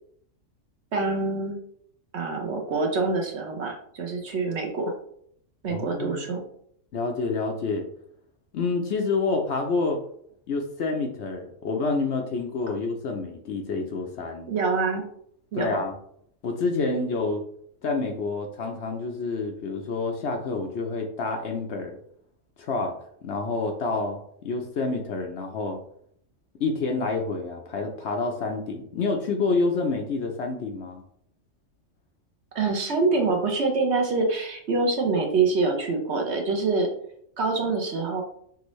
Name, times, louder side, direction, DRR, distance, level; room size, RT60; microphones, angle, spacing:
voice 1, 0.9-1.6 2.1-4.9 5.6-6.4 14.5-15.0 15.5-15.8 32.5-36.9 37.4-38.2, right 3 dB, 55° right, 2 dB, 1.0 m, -25 dB
voice 2, 5.7-6.3 6.9-7.9 8.5-10.0 10.5-14.5 15.5-15.9 16.4-17.4 17.8-22.0 22.6-25.8 26.6-31.0, left 3 dB, 60° left, 3 dB, 0.8 m, -28 dB
6.0 x 2.6 x 3.1 m, 0.67 s
omnidirectional pair, 1.4 m